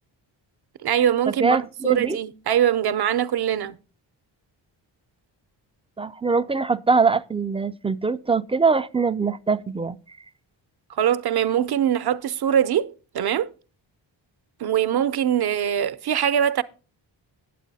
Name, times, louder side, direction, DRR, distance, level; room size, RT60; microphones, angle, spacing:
voice 1, 0.8-3.8 10.9-13.5 14.6-16.6, right 9 dB, 55° right, 0.7 m, -22 dB
voice 2, 1.4-2.2 6.0-10.2, right 4 dB, 15° right, 0.3 m, -23 dB
8.4 x 8.2 x 4.1 m
cardioid pair, 70°, 45 cm